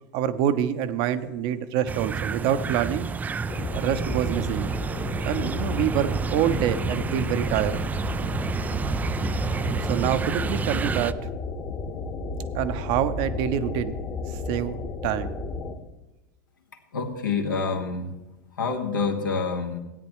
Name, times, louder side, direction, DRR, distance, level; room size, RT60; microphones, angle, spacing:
voice 1, 0.1-3.1 3.7-4.7 5.2-7.8 9.8-11.2 12.5-14.0 14.3-14.8 15.0-15.3, right 10 dB, 50° right, 11 dB, 0.8 m, -26 dB
sound 1, 1.9-11.1, right 5 dB, 15° right, 0.3 m, -30 dB
sound 2, 3.5-15.7, left 3 dB, 35° left, 1.3 m, -32 dB
voice 2, 16.9-18.1 18.6-19.8, left 4 dB, 80° left, 4 dB, 1.5 m, -27 dB
16.5 x 9.3 x 3.1 m, 1.0 s
figure-of-eight pair, 90°, 11 cm